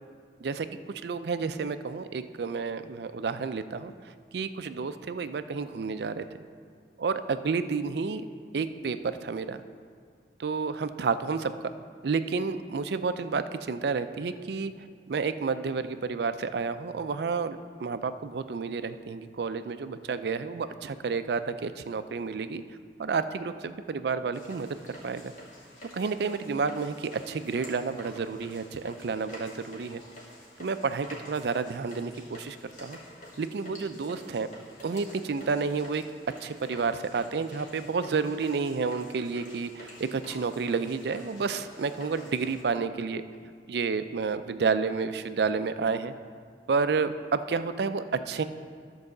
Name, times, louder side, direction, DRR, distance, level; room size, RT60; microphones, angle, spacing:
voice 1, 0.4-3.9 4.3-6.2 7.0-8.2 8.5-9.6 10.4-11.5 12.0-14.7 15.1-22.6 23.0-24.7 25.0-25.3 25.9-30.0 30.6-33.0 33.4-34.5 34.8-36.0 36.4-43.2 43.7-46.1 46.7-48.4, right 5 dB, 70° right, 11 dB, 0.4 m, -30 dB
sound 1, 24.3-42.6, left 1 dB, 45° left, 2.0 m, -49 dB
12.0 x 4.7 x 6.5 m, 2.1 s
head